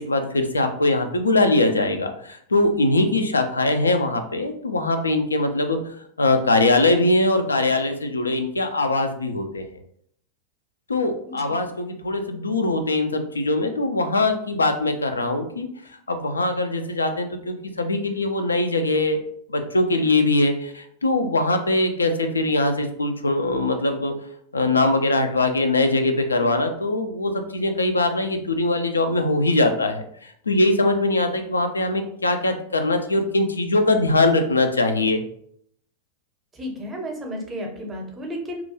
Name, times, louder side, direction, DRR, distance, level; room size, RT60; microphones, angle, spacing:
voice 1, 0.0-9.6 10.9-15.7 16.1-19.2 19.5-24.1 24.5-35.2, left 2 dB, 75° left, 6 dB, 0.3 m, -22 dB
voice 2, 11.3-11.6 36.5-38.6, equal, 15° right, 2 dB, 0.6 m, -33 dB
2.3 x 2.1 x 2.9 m, 0.66 s
figure-of-eight pair, 90°, 0 cm